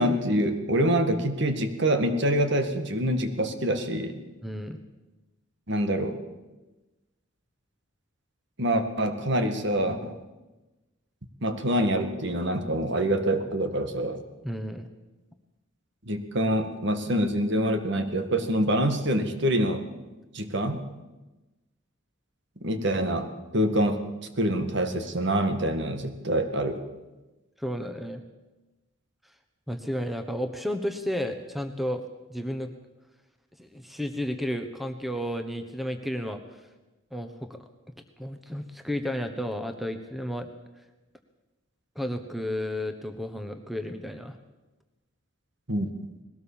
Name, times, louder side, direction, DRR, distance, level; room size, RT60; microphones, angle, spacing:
voice 1, 0.0-4.2 5.7-6.2 8.6-10.2 11.4-14.2 16.1-19.9 20.3-20.8 22.6-23.3 23.5-24.0 24.4-26.8 45.7-45.9, right 1 dB, 55° right, 8 dB, 1.9 m, -25 dB
voice 2, 4.4-4.8 14.4-14.9 27.6-28.2 29.7-32.0 32.3-32.7 33.6-36.6 37.1-37.6 38.2-40.5 41.9-44.4, equal, ahead, 6 dB, 1.2 m, -32 dB
21.0 x 17.5 x 7.3 m, 1.1 s
head